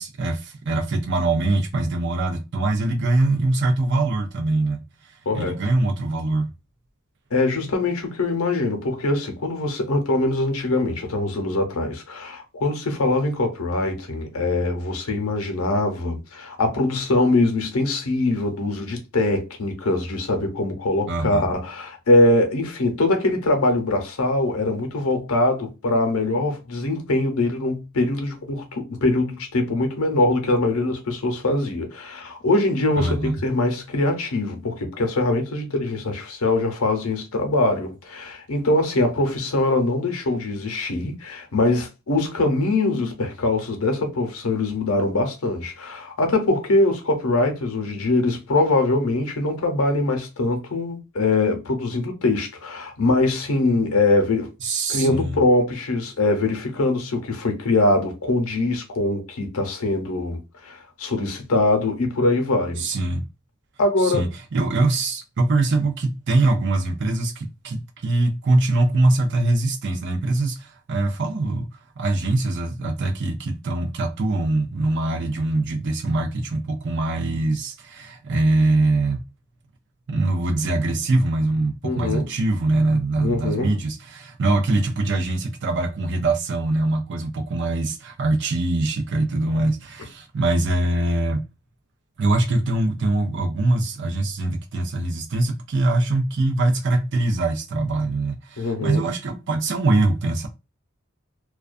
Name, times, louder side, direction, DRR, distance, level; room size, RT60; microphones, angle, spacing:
voice 1, 0.0-4.9 5.3-6.5 21.1-21.4 33.0-33.4 54.6-55.4 62.8-63.2 64.0-71.7 72.0-79.2 80.1-91.4 92.2-100.5, right 2 dB, 55° right, 0.5 m, -23 dB
voice 2, 7.3-54.5 54.9-62.8 63.8-64.2 81.8-82.3 83.2-83.7 98.6-99.0, left 2 dB, 85° left, 0.7 m, -22 dB
2.4 x 2.2 x 2.5 m
head